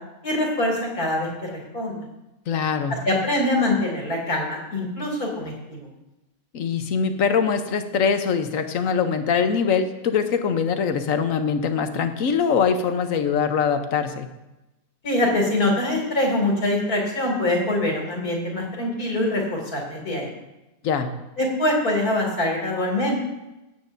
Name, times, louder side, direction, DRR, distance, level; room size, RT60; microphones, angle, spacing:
voice 1, 0.2-1.3 1.7-2.0 3.0-5.9 15.0-20.3 21.4-23.1, left 1 dB, 85° left, -1 dB, 3.2 m, -24 dB
voice 2, 2.5-3.0 6.5-14.3 20.8-21.1, left 6 dB, 65° left, 8 dB, 1.3 m, -23 dB
18.0 x 8.4 x 2.7 m, 0.96 s
omnidirectional pair, 1.6 m